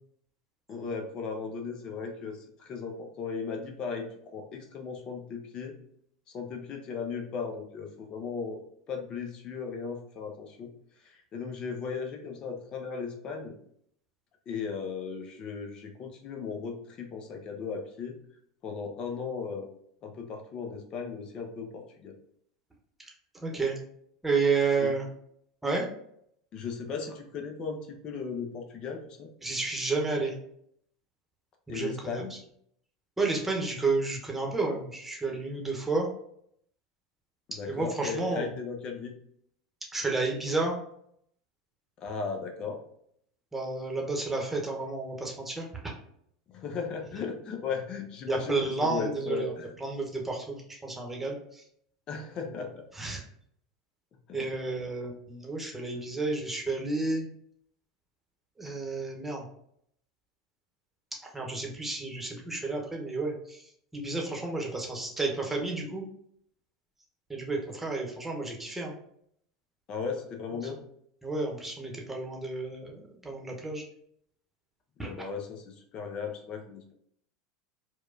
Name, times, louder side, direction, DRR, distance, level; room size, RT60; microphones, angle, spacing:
voice 1, 0.7-5.7 6.3-8.6 8.9-10.7 11.0-13.5 14.5-18.2 18.6-19.7 20.0-22.1 24.8-24.9 26.5-29.3 31.7-32.3 37.5-39.1 42.0-42.8 46.5-49.7 52.1-52.9 54.1-54.5 55.9-56.0 69.9-70.8 75.0-76.9, left 5 dB, 40° left, 3 dB, 0.7 m, -36 dB
voice 2, 23.4-23.7 24.2-25.0 25.6-25.8 29.4-30.3 31.7-32.2 33.2-36.1 37.7-38.5 39.9-40.7 43.5-45.6 48.3-51.4 53.0-53.2 54.3-57.3 58.6-59.4 61.3-63.6 63.9-66.0 67.3-68.9 71.2-73.8 75.0-75.1, right 3 dB, 10° right, 0 dB, 1.0 m, -31 dB
4.5 x 2.3 x 2.6 m, 0.69 s
hypercardioid pair, 85°, 2 cm